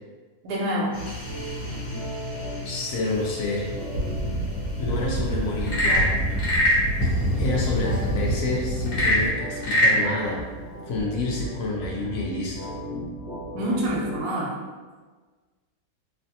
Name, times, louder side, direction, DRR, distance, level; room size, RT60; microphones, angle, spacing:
voice 1, 0.4-0.9 13.5-14.5, equal, 85° right, -3 dB, 1.2 m, -26 dB
sound 1, 0.9-9.3, equal, 50° left, 1.5 m, -29 dB
sound 2, 1.2-14.2, right 2 dB, 30° left, 1.6 m, -37 dB
voice 2, 2.6-3.7 4.8-6.2 6.8-6.9 7.3-10.4 10.9-12.7, left 2 dB, 70° left, -2 dB, 0.9 m, -28 dB
Frog / Percussion / Wood, 5.6-6.9 8.9-10.0, equal, 85° left, 1.5 m, -21 dB
3.2 x 2.4 x 2.7 m, 1.4 s
omnidirectional pair, 1.7 m